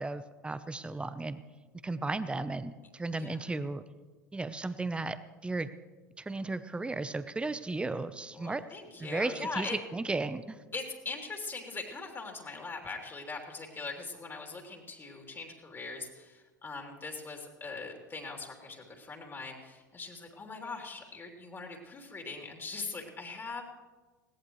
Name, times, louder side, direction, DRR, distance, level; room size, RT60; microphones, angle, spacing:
voice 1, 0.0-1.4 1.8-3.8 4.3-5.2 5.4-5.7 6.2-8.6 9.0-10.6, right 3 dB, 10° right, 13 dB, 0.9 m, -35 dB
voice 2, 8.3-9.8 10.7-23.8, left 4 dB, 25° left, 1 dB, 3.3 m, -41 dB
21.5 x 17.5 x 3.2 m, 1.3 s
figure-of-eight pair, 75°, 10 cm